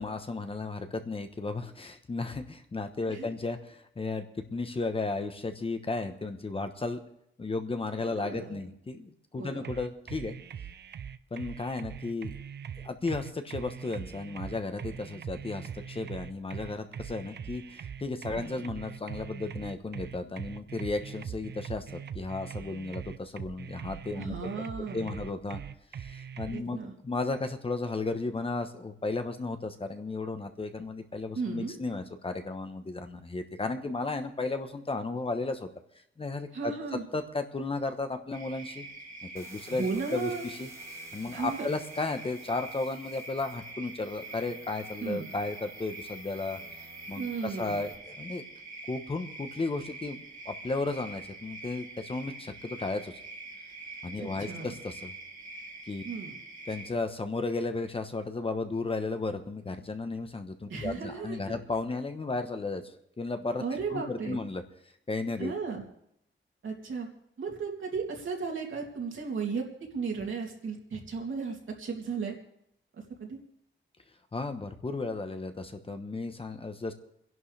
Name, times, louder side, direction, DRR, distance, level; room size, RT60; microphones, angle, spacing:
voice 1, 0.0-7.0 7.4-10.4 11.3-12.3 12.8-24.5 24.8-25.6 26.0-35.7 36.2-38.9 39.2-40.7 41.1-46.6 47.1-48.4 48.9-53.1 54.0-55.1 55.9-56.0 56.7-62.8 63.2-63.6 63.9-64.6 65.1-65.5 74.3-76.9, left 3 dB, 25° left, 7 dB, 1.0 m, -34 dB
voice 2, 8.1-8.6 9.4-9.7 18.3-18.7 24.2-25.2 26.5-26.9 31.3-31.7 36.5-37.0 39.7-40.4 41.3-41.7 45.0-45.3 47.1-47.8 54.2-54.7 56.0-56.4 60.7-61.5 63.6-64.4 65.4-65.8 66.6-67.1 67.4-69.7 69.9-72.3 73.2-73.4, right 5 dB, 75° right, 0 dB, 2.9 m, -35 dB
sound 1, 9.6-26.6, right 8 dB, 55° right, 0.6 m, -41 dB
sound 2, 38.3-56.9, right 2 dB, 40° right, 2.1 m, -45 dB
sound 3, 39.4-48.0, right 1 dB, 15° right, 1.7 m, -54 dB
30.0 x 11.0 x 3.4 m, 0.74 s
wide cardioid pair, 150°, 21 cm